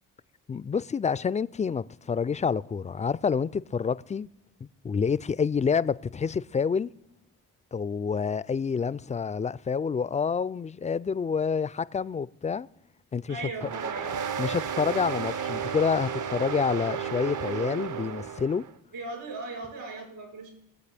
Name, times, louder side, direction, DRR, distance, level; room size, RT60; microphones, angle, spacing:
voice 1, 0.5-4.3 4.8-6.9 7.7-12.7 13.1-13.4 14.4-18.6, left 6 dB, 20° left, 0.3 m, -28 dB
voice 2, 13.3-14.1 18.9-20.5, right 3 dB, 70° right, 4.9 m, -38 dB
sound 1, 13.6-18.7, right 7 dB, 50° right, 0.7 m, -32 dB
21.5 x 8.0 x 3.4 m
supercardioid pair, 45°, 39 cm